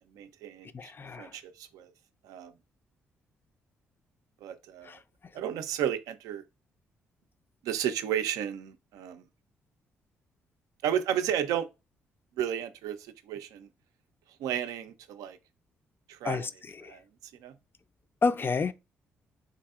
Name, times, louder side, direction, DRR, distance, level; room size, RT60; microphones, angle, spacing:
voice 1, 0.1-0.9 1.2-1.9 2.2-2.5 4.4-5.0 5.3-6.4 7.6-9.2 10.8-11.7 12.4-13.7 14.4-15.4 16.1-16.5 16.8-17.0 17.4-17.5, right 10 dB, 75° right, 0.4 m, -33 dB
voice 2, 0.7-1.3 4.8-5.0 16.2-16.5 16.8-16.9 18.2-18.7, left 4 dB, 35° left, 0.4 m, -29 dB
3.8 x 2.6 x 2.4 m
hypercardioid pair, 45°, 6 cm